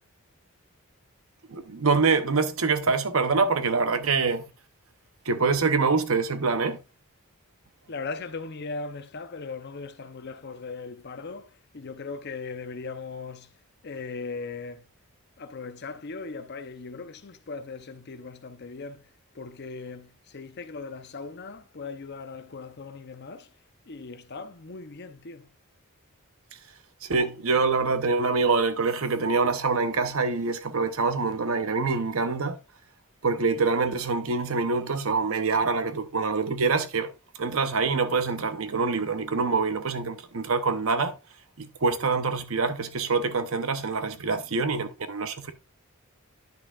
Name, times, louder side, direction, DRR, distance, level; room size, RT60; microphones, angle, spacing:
voice 1, 1.5-4.5 5.3-6.8 27.0-32.6 33.2-37.1 37.4-41.1 41.6-45.5, right 4 dB, 65° right, 0.8 m, -25 dB
voice 2, 7.9-13.5 13.8-14.8 15.4-23.5 23.9-25.5, left 4 dB, 50° left, 0.7 m, -39 dB
10.5 x 6.1 x 2.4 m
head